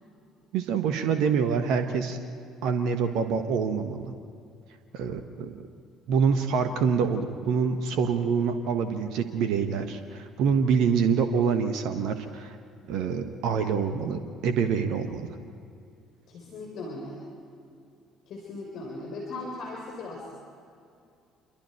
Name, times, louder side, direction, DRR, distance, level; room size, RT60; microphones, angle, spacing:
voice 1, 0.5-2.2 2.6-4.1 4.9-5.7 6.1-12.6 12.9-15.3, right 6 dB, 60° right, 8 dB, 1.4 m, -26 dB
voice 2, 16.3-17.2 18.3-20.3, left 2 dB, 55° left, -1 dB, 4.0 m, -38 dB
28.0 x 23.0 x 4.5 m, 2.4 s
figure-of-eight pair, 50°, 0 cm